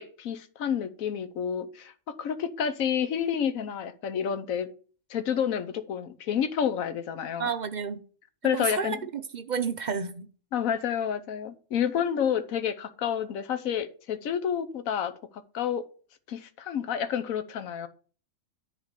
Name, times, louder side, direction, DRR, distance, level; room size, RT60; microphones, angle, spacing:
voice 1, 0.0-1.9 2.2-4.7 5.1-7.5 8.4-9.0 10.5-15.1 15.5-15.8 16.3-17.9, left 8 dB, 75° left, 1.2 m, -29 dB
voice 2, 7.4-8.0 8.5-10.3, right 6 dB, 55° right, 0.5 m, -31 dB
10.5 x 3.8 x 6.5 m
omnidirectional pair, 1.5 m